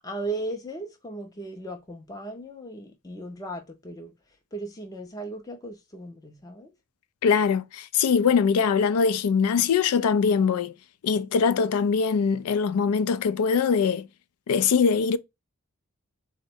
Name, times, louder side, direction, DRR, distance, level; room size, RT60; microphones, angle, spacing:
voice 1, 0.0-4.1 4.5-6.7, right 2 dB, 15° left, 0.4 m, -36 dB
voice 2, 7.2-10.7 11.0-14.1 14.5-15.2, left 6 dB, 85° left, 0.4 m, -22 dB
3.7 x 2.1 x 4.3 m
head